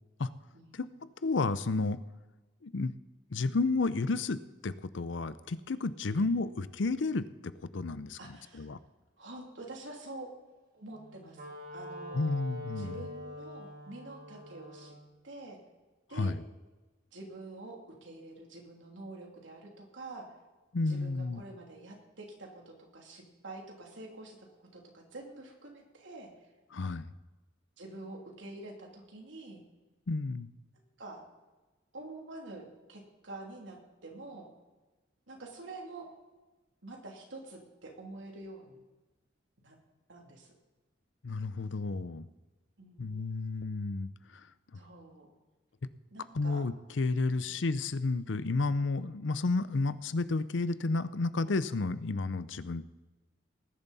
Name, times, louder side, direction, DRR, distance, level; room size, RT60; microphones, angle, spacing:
voice 1, 0.5-0.9 6.1-6.2 8.2-8.7 9.2-10.3 10.7-11.4 11.7-12.3 12.8-15.0 15.2-15.6 16.1-16.3 17.1-20.3 20.9-26.3 27.8-29.6 31.0-31.2 31.9-34.5 35.3-36.1 36.8-38.8 39.6-39.8 40.1-40.5 42.8-43.1 44.7-45.3 46.1-46.6 47.4-47.5, right 2 dB, 90° right, 0 dB, 2.9 m, -47 dB
voice 2, 1.2-2.0 2.6-2.9 3.3-8.2 8.5-8.8 12.1-12.9 16.1-16.4 20.7-21.4 26.7-27.1 30.1-30.5 41.2-42.2 43.0-44.1 46.3-52.9, left 3 dB, 75° left, 15 dB, 0.6 m, -31 dB
Wind instrument woodwind instrument, 10.9-15.0, equal, 50° right, 2.7 m, -45 dB
19.5 x 11.0 x 4.2 m, 1.2 s
head